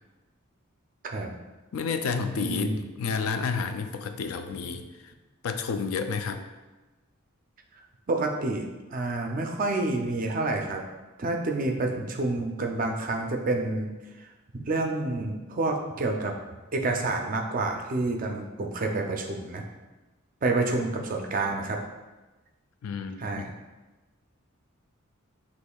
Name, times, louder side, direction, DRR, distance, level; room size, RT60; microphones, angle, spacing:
voice 1, 1.7-5.1 5.4-6.4 22.8-23.4, left 5 dB, 75° left, 8 dB, 0.4 m, -30 dB
voice 2, 2.4-2.8 8.1-8.6 8.9-10.8 11.2-13.9 14.2-14.3 14.5-16.3 16.7-19.6 20.4-21.8 23.2-23.5, right 2 dB, 40° right, 2 dB, 0.4 m, -28 dB
6.2 x 3.0 x 2.3 m, 1.2 s
head